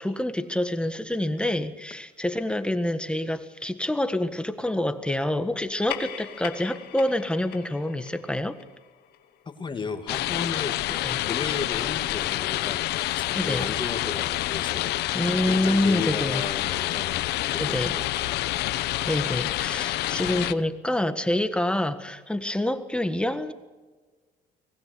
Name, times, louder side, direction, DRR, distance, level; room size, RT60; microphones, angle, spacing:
voice 1, 0.0-8.6 11.0-11.2 13.3-13.7 15.1-16.5 17.6-18.0 18.6-23.5, left 1 dB, 5° left, 1.6 m, -27 dB
sound 1, 5.6-10.5, left 10 dB, 65° left, 2.7 m, -41 dB
voice 2, 9.6-10.8 11.3-14.9 15.5-18.4, left 4 dB, 30° left, 2.4 m, -34 dB
sound 2, 10.1-20.5, left 16 dB, 80° left, 0.9 m, -28 dB
24.5 x 20.0 x 6.9 m
cardioid pair, 110°, 17 cm